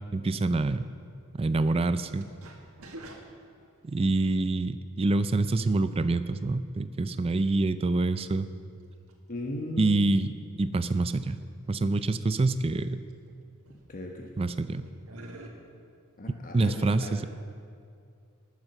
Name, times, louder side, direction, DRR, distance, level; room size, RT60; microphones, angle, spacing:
voice 1, 0.1-0.9 1.4-2.3 3.8-8.5 9.8-10.3 10.6-11.4 11.7-13.0 14.4-14.9 16.5-17.2, right 2 dB, 25° right, 13 dB, 0.4 m, -26 dB
sound 1, 2.2-4.1 5.2-5.5 5.9-6.0 8.1-8.2 9.1-9.2 9.5-9.8 10.6-10.7 11.4-11.5 11.7-12.3 12.8-13.3 13.6-14.5 14.8-15.5, right 1 dB, 90° right, 1.7 m, -47 dB
voice 2, 9.3-10.2 13.9-14.3 16.2-17.2, left 1 dB, 40° left, 1 dB, 1.0 m, -37 dB
19.5 x 7.4 x 6.5 m, 2.4 s
head